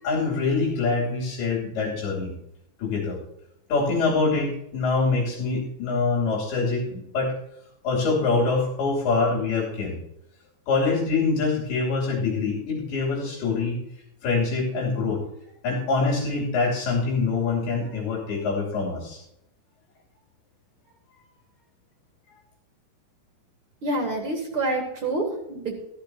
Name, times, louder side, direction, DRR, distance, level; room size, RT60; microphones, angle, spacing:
voice 1, 0.0-2.3 2.8-3.2 3.7-7.3 7.8-10.0 10.7-13.8 14.2-15.2 15.6-19.2, left 4 dB, 85° left, -4 dB, 4.9 m, -25 dB
voice 2, 23.8-25.7, right 2 dB, 45° right, 1 dB, 2.1 m, -27 dB
14.5 x 14.0 x 2.9 m, 0.79 s
omnidirectional pair, 4.4 m